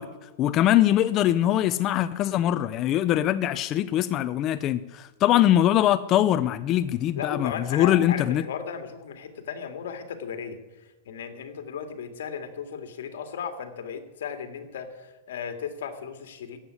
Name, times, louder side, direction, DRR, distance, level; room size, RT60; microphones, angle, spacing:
voice 1, 0.0-8.4, left 12 dB, 25° left, 0.4 m, -22 dB
voice 2, 7.1-16.6, left 7 dB, 80° left, 2.3 m, -36 dB
14.5 x 8.1 x 9.8 m
supercardioid pair, 170°, 0 cm